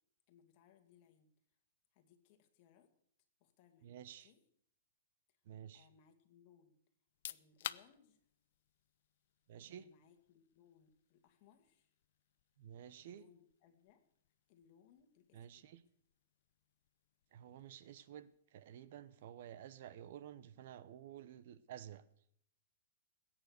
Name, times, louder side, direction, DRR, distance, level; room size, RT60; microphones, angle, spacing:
voice 1, 0.3-1.3 1.9-2.9 3.4-3.9 4.2-4.4 5.3-5.4 5.7-6.8 7.3-8.2 9.6-11.9 13.0-14.0 14.5-15.7, left 8 dB, 35° left, 5 dB, 2.4 m, -68 dB
voice 2, 3.8-4.3 5.5-5.9 9.5-9.8 12.6-13.2 15.3-15.8 17.3-22.0, right 10 dB, 55° right, 15 dB, 0.9 m, -52 dB
sound 1, 7.0-19.6, left 12 dB, 60° left, 0.6 m, -56 dB
20.5 x 9.1 x 6.6 m, 0.68 s
hypercardioid pair, 155°, 0 cm